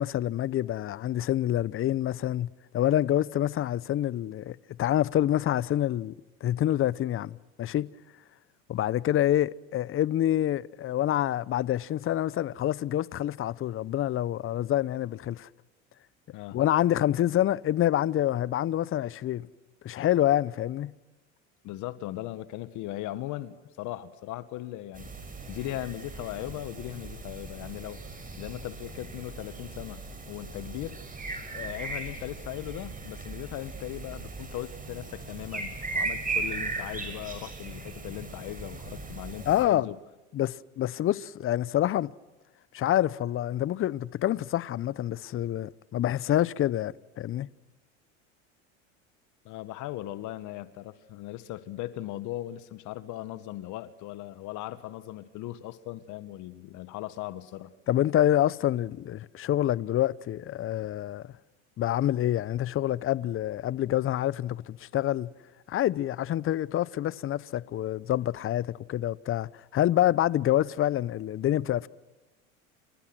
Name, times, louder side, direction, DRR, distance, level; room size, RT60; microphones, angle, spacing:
voice 1, 0.0-6.1 6.4-7.9 8.7-15.5 16.5-19.5 19.8-20.9 39.4-39.9 40.3-42.1 42.7-47.5 57.9-61.2 61.8-65.3 65.7-71.9, left 12 dB, 35° left, 0.8 m, -27 dB
voice 2, 21.6-25.1 25.5-28.0 28.4-31.0 31.5-39.9 49.4-57.7, left 15 dB, 55° left, 1.7 m, -38 dB
sound 1, 24.9-39.6, right 3 dB, 25° right, 7.0 m, -38 dB
30.0 x 28.5 x 6.2 m
hypercardioid pair, 85°, 36 cm